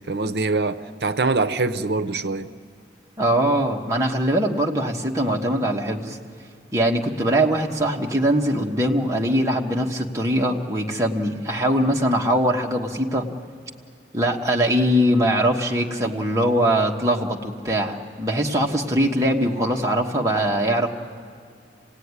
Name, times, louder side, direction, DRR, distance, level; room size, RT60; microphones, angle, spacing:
voice 1, 0.0-2.5, right 3 dB, 70° right, 11 dB, 0.8 m, -24 dB
voice 2, 3.2-6.2 6.7-13.3 14.1-20.9, right 1 dB, 20° right, 0 dB, 1.4 m, -22 dB
26.5 x 18.0 x 9.7 m, 2.1 s
head